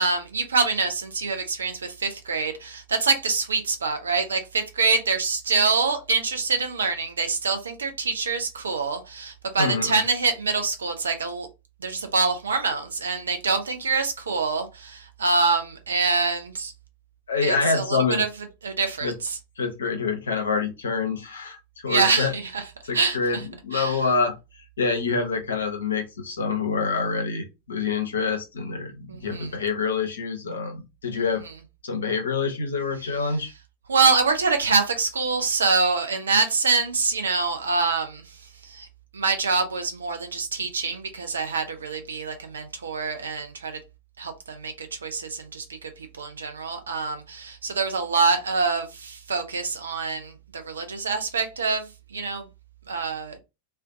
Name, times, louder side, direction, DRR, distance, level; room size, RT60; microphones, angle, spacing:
voice 1, 0.0-11.5 11.8-16.7 17.4-18.3 18.6-19.4 21.9-22.6 22.9-23.4 23.7-24.0 29.1-29.6 31.1-31.2 33.9-38.9 39.1-43.8 44.2-52.5 52.9-53.4, right 4 dB, 70° right, 0.4 m, -25 dB
voice 2, 9.6-10.0 17.3-18.2 19.0-19.1 19.6-22.3 22.9-24.3 24.8-31.4 31.8-33.5, left 4 dB, 70° left, 0.6 m, -26 dB
2.4 x 2.1 x 2.5 m
figure-of-eight pair, 90°, 0 cm